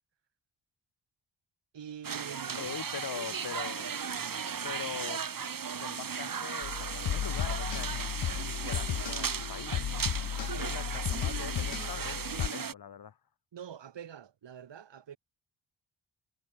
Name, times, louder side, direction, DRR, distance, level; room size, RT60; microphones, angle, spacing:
voice 1, 1.7-2.7 10.5-10.8 13.5-15.2, right 9 dB, 75° right, 7.2 m, -45 dB
sound 1, 2.0-12.7, right 6 dB, 50° right, 3.3 m, -36 dB
voice 2, 2.6-3.9 4.6-5.2 5.8-9.8 10.2-13.2, left 8 dB, 55° left, 1.9 m, -43 dB
sound 2, 6.6-12.5, left 11 dB, 85° left, 2.5 m, -34 dB
cardioid pair, 100°, 44 cm